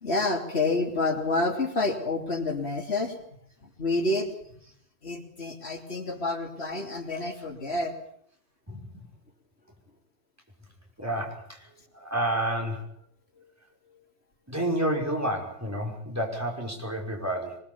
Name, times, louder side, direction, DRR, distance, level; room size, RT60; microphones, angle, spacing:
voice 1, 0.0-3.2 3.6-4.3 5.0-8.0 13.4-13.5, left 2 dB, 80° left, 3 dB, 3.3 m, -28 dB
voice 2, 8.7-9.0 11.0-11.7 11.9-12.8 14.5-17.6, right 1 dB, 15° right, 1 dB, 5.6 m, -30 dB
23.0 x 21.5 x 7.2 m, 0.65 s
omnidirectional pair, 1.1 m